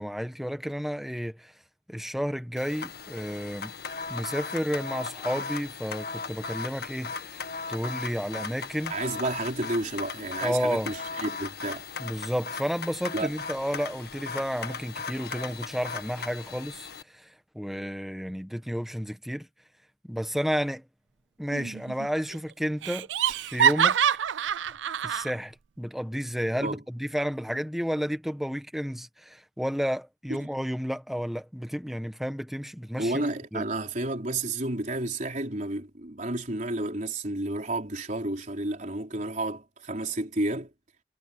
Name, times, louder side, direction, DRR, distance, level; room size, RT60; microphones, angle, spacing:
voice 1, 0.0-1.5 1.9-3.7 4.1-8.9 10.4-10.9 12.0-17.3 17.5-19.5 20.0-20.8 21.4-24.0 25.0-33.6, equal, ahead, 1.4 m, -31 dB
sound 1, 2.6-17.0, left 4 dB, 55° left, 1.6 m, -37 dB
voice 2, 8.9-11.8 13.1-13.3 26.6-26.8 30.3-30.4 33.0-40.7, right 2 dB, 45° right, 4.1 m, -31 dB
Laughter, 21.5-22.1 22.3-22.4 22.8-25.3, right 8 dB, 85° right, 0.5 m, -25 dB
head